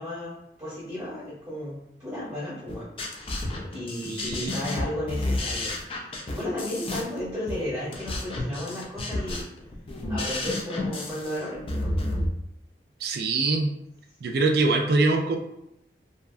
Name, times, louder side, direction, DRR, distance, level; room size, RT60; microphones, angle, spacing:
voice 1, 0.0-9.5 10.1-12.0, left 1 dB, 15° right, -10 dB, 0.9 m, -34 dB
sound 1, 2.7-12.3, left 1 dB, 30° left, 0.3 m, -31 dB
voice 2, 4.1-4.5 13.0-13.7 14.2-15.4, right 3 dB, 60° right, 3 dB, 0.3 m, -23 dB
2.7 x 2.3 x 2.4 m, 0.81 s
head